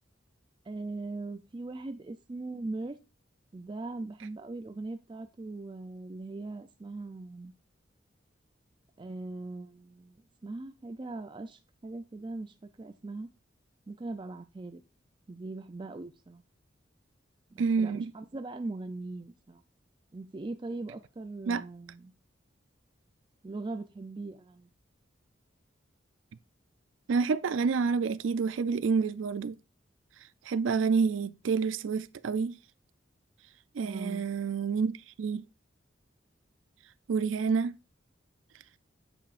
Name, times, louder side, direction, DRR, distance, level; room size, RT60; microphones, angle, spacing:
voice 1, 0.7-3.0 3.5-7.5 9.0-10.2 10.4-13.3 13.9-14.8 15.3-16.4 17.5-19.6 20.1-22.1 23.4-24.7 33.8-34.3, right 2 dB, 25° right, 0.4 m, -40 dB
voice 2, 17.6-18.1 21.5-21.6 27.1-29.6 30.5-32.6 33.7-35.4 37.1-37.7, right 5 dB, 90° right, 0.4 m, -28 dB
8.8 x 6.8 x 2.5 m
head